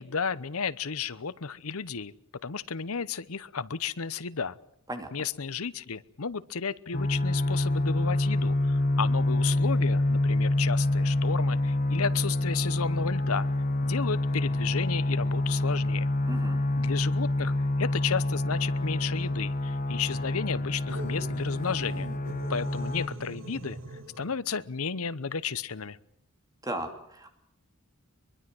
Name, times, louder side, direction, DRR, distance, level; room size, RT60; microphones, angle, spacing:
voice 1, 0.0-2.1 2.4-4.6 5.1-13.5 13.8-16.1 16.8-22.1 22.5-26.0, left 6 dB, 75° left, 17 dB, 0.9 m, -33 dB
sound 1, 6.9-23.1, left 1 dB, 40° left, 1.5 m, -27 dB
voice 2, 16.3-16.6 26.6-27.3, right 1 dB, 15° right, 5 dB, 2.8 m, -36 dB
sound 2, 20.9-24.4, right 1 dB, 60° right, 2.4 m, -42 dB
23.5 x 23.0 x 7.7 m, 0.71 s
head